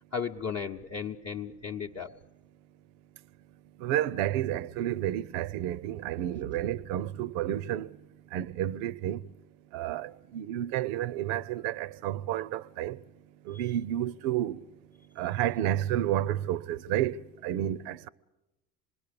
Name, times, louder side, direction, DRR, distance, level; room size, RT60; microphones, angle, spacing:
voice 1, 0.1-2.2 13.5-13.6, left 6 dB, 35° left, 0.8 m, -35 dB
voice 2, 3.8-8.0 8.3-9.2 9.7-13.0 13.5-14.6 15.2-18.1, right 12 dB, 70° right, 0.7 m, -31 dB
26.0 x 20.5 x 6.9 m
hypercardioid pair, 65°, 47 cm